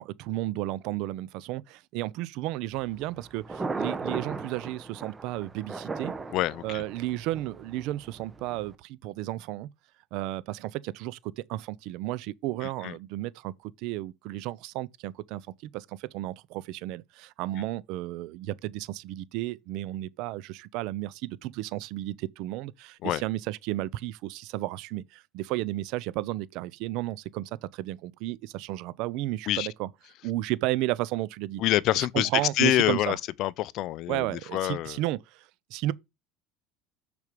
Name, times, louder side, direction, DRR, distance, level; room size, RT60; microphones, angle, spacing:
voice 1, 0.0-6.1 6.6-9.7 10.1-29.9 30.2-31.6 31.9-33.2 34.1-35.9, right 16 dB, 65° right, 0.6 m, -33 dB
Thunder, 2.7-8.7, right 4 dB, 20° right, 1.0 m, -37 dB
voice 2, 6.3-6.8 12.6-12.9 23.0-23.2 29.5-29.7 31.6-32.3 32.6-35.0, left 15 dB, 55° left, 0.5 m, -27 dB
6.5 x 5.1 x 5.1 m
supercardioid pair, 105°, 0 cm